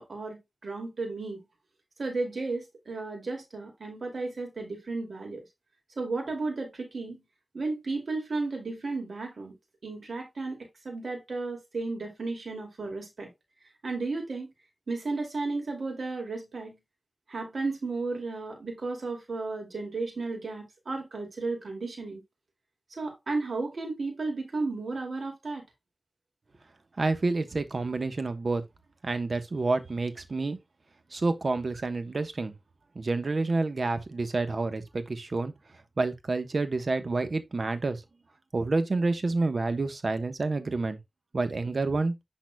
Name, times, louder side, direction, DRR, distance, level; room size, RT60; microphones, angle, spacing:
voice 1, 0.0-1.4 2.0-5.4 6.0-7.2 7.5-9.5 9.8-10.6 10.8-13.3 13.8-14.5 14.9-16.8 17.3-22.2 22.9-25.6, right 3 dB, 85° right, 2.4 m, -33 dB
voice 2, 27.0-28.6 29.0-30.6 31.1-32.5 32.9-35.5 36.0-38.0 38.5-41.0 41.3-42.1, right 3 dB, 65° right, 1.1 m, -28 dB
10.5 x 4.1 x 2.2 m
wide cardioid pair, 75°, 0 cm